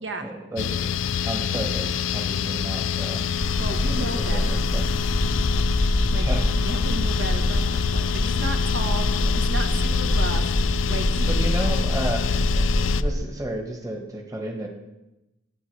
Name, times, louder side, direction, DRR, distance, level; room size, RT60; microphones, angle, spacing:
voice 1, 0.2-0.9 1.2-3.3 3.9-4.8 6.1-6.5 9.2-9.4 11.3-14.7, right 1 dB, 15° right, 1 dB, 1.3 m, -32 dB
sound 1, 0.6-13.0, left 7 dB, 80° left, 0.4 m, -26 dB
sound 2, 3.4-13.1, left 1 dB, 20° left, 0.7 m, -25 dB
voice 2, 3.6-4.6 6.1-10.6 10.9-11.5, right 2 dB, 65° right, 4 dB, 1.1 m, -34 dB
16.5 x 9.3 x 3.3 m, 0.97 s
head